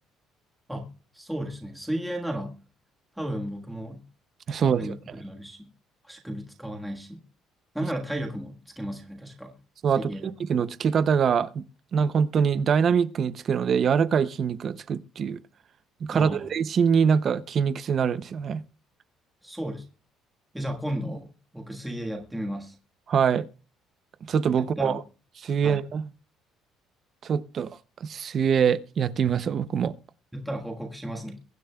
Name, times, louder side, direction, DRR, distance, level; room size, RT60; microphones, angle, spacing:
voice 1, 1.1-2.6 3.2-4.0 4.5-5.7 6.1-7.2 7.7-9.5 9.9-10.3 16.1-16.5 19.4-19.8 20.5-22.7 24.6-25.0 25.6-25.9 30.3-31.4, equal, 5° right, 1.4 m, -34 dB
voice 2, 4.5-4.9 9.8-11.6 11.9-15.4 16.0-18.6 23.1-23.4 24.3-25.0 25.4-26.0 27.2-29.9, right 7 dB, 35° right, 0.5 m, -24 dB
22.5 x 10.0 x 2.2 m
cardioid pair, 175°, 0 cm